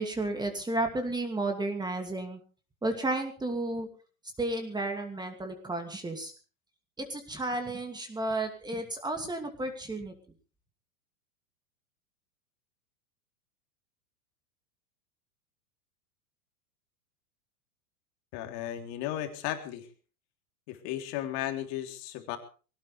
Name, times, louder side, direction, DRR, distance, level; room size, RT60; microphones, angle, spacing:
voice 1, 0.0-2.4 2.8-3.9 4.4-6.3 7.0-10.1, right 2 dB, 10° right, 4 dB, 2.6 m, -32 dB
voice 2, 18.3-19.9 20.7-22.4, left 12 dB, 50° left, 5 dB, 3.6 m, -35 dB
21.0 x 18.0 x 3.4 m, 0.37 s
hypercardioid pair, 120°, 43 cm